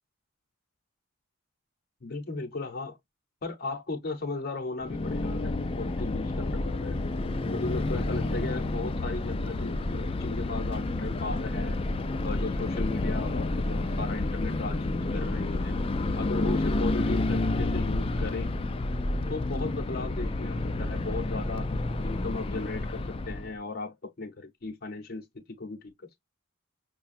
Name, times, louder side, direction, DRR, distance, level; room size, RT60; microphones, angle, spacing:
voice 1, 2.0-3.0 3.4-7.0 7.4-11.8 12.2-15.7 16.2-18.5 19.3-21.7 22.0-25.2 25.6-25.9, left 3 dB, 50° left, 0.8 m, -36 dB
sound 1, 4.8-23.6, left 2 dB, 25° left, 0.4 m, -30 dB
5.6 x 2.2 x 2.5 m
head